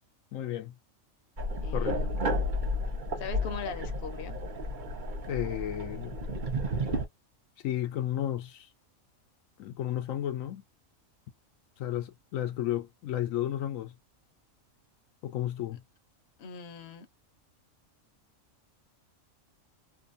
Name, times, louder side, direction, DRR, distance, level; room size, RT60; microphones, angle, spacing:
voice 1, 0.3-0.7 1.7-1.9 5.3-6.2 7.6-8.7 9.6-10.6 11.8-13.9 15.2-15.8, left 12 dB, 80° left, 1.0 m, -33 dB
sound 1, 1.4-7.0, equal, 45° right, 0.8 m, -32 dB
voice 2, 1.6-2.5 3.2-4.4 16.4-17.1, left 7 dB, 55° left, 0.8 m, -41 dB
2.7 x 2.2 x 2.5 m
omnidirectional pair, 1.4 m